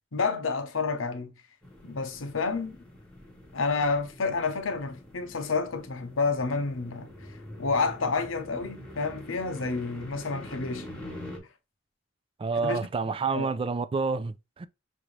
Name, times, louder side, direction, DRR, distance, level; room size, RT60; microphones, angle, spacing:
voice 1, 0.1-1.3 1.8-2.8 3.5-7.1 7.6-10.9 12.6-12.8 13.3-13.5, left 4 dB, 85° left, 0.9 m, -29 dB
sound 1, 1.6-11.4, left 1 dB, 5° left, 1.3 m, -45 dB
voice 2, 12.4-14.7, right 4 dB, 25° right, 0.3 m, -28 dB
5.9 x 2.7 x 3.2 m
head